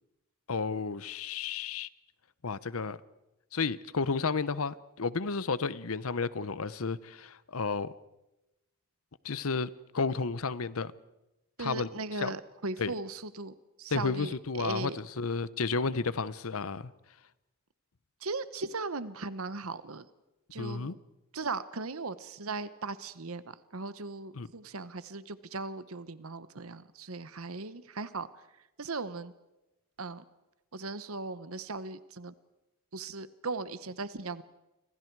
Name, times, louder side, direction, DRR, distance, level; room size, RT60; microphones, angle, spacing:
voice 1, 0.5-1.9 2.4-3.0 3.5-7.9 9.2-10.9 11.6-11.9 12.2-12.3 12.8-12.9 13.9-16.9 20.6-21.0 24.4-24.5, left 4 dB, 70° left, 0.8 m, -32 dB
voice 2, 11.6-15.0 18.2-20.1 20.5-21.0 21.3-28.3 28.8-29.3 30.0-30.2 30.7-32.3 32.9-34.4, right 3 dB, 70° right, 1.1 m, -38 dB
30.0 x 25.5 x 4.7 m
head